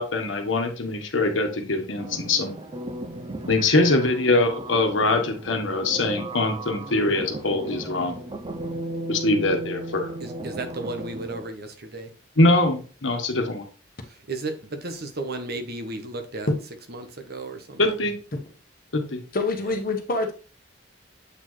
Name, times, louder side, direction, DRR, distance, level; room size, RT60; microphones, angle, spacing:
voice 1, 0.0-2.5 3.5-8.1 9.1-10.1 12.4-13.6 17.8-18.1 18.9-19.2, left 2 dB, 75° left, 1.3 m, -23 dB
sound 1, 2.0-11.5, right 1 dB, 25° right, 0.5 m, -36 dB
voice 2, 10.2-12.1 14.1-16.5 16.9-18.0 19.6-19.7, right 2 dB, 55° right, 1.0 m, -34 dB
voice 3, 19.3-20.3, left 3 dB, 50° left, 1.1 m, -26 dB
8.0 x 4.3 x 3.1 m
head